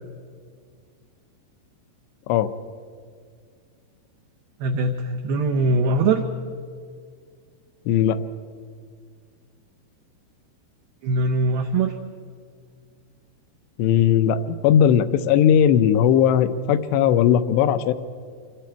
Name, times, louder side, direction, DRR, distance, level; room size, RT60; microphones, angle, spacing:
voice 1, 4.6-6.2 11.0-11.9, right 2 dB, 75° right, 3 dB, 2.4 m, -21 dB
voice 2, 7.9-8.2 13.8-17.9, left 9 dB, 80° left, 12 dB, 2.7 m, -18 dB
27.5 x 22.0 x 4.6 m, 2.1 s
omnidirectional pair, 5.3 m